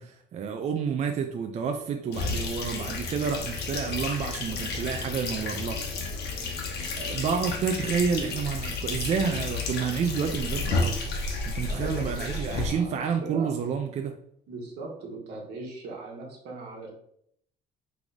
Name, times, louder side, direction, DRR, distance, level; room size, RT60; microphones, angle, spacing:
voice 1, 0.0-5.8 7.0-11.0 11.5-14.1, right 6 dB, 40° right, 5 dB, 0.4 m, -29 dB
sound 1, 2.1-12.7, left 3 dB, 75° left, 1.0 m, -31 dB
voice 2, 11.7-13.5 14.5-16.9, right 3 dB, 80° right, 0 dB, 1.3 m, -39 dB
3.8 x 3.3 x 3.5 m, 0.69 s
cardioid pair, 110°, 17 cm